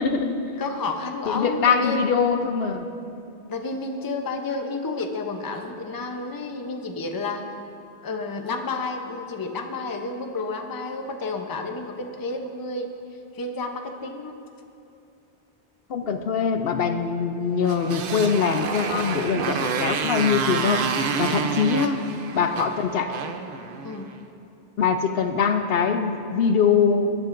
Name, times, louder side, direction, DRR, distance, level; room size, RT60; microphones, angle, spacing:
voice 1, 0.0-0.5 1.3-2.9 15.9-22.0 22.3-23.1 24.8-27.1, left 6 dB, 70° left, 7 dB, 0.8 m, -23 dB
voice 2, 0.6-2.0 3.5-7.4 8.0-12.9 13.3-14.3 21.3-21.6 23.8-24.1, left 3 dB, 25° left, 4 dB, 0.6 m, -31 dB
Motorcycle, 17.6-24.1, right 6 dB, 65° right, 0.8 m, -28 dB
18.5 x 10.5 x 2.5 m, 2.7 s
omnidirectional pair, 1.1 m